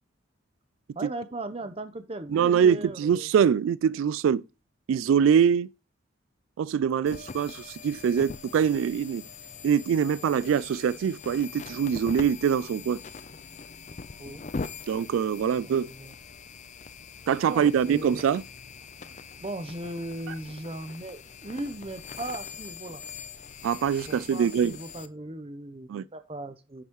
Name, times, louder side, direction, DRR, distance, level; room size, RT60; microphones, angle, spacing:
voice 1, 0.9-3.3 14.2-14.4 15.6-16.1 17.5-18.2 19.4-23.0 24.1-26.8, right 1 dB, 30° right, 0.7 m, -38 dB
voice 2, 2.3-4.4 4.9-5.7 6.6-9.2 9.6-13.0 14.9-15.9 17.3-18.4 23.6-24.8 25.9-26.0, right 7 dB, 85° right, 0.3 m, -24 dB
sound 1, 7.1-25.1, left 5 dB, 35° left, 0.5 m, -42 dB
9.7 x 5.5 x 3.0 m
head